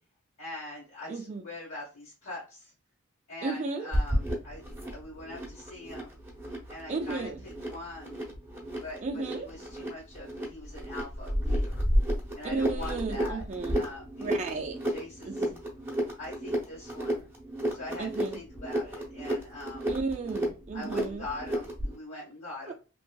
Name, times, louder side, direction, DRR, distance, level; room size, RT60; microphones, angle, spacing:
voice 1, 0.4-2.7 3.3-6.2 6.7-8.2 8.8-11.8 12.3-14.6 14.9-15.5 16.2-17.2 17.7-19.9 20.7-22.7, left 2 dB, 60° left, -6 dB, 1.1 m, -43 dB
voice 2, 1.1-1.5 3.4-3.9 6.9-7.4 9.0-9.5 12.5-13.8 14.2-14.8 15.2-15.6 18.0-18.4 19.9-21.2 22.7-22.8, right 3 dB, 35° right, 2 dB, 0.4 m, -34 dB
sound 1, 3.9-21.9, equal, 10° right, 0.9 m, -33 dB
2.9 x 2.8 x 2.2 m, 0.33 s
head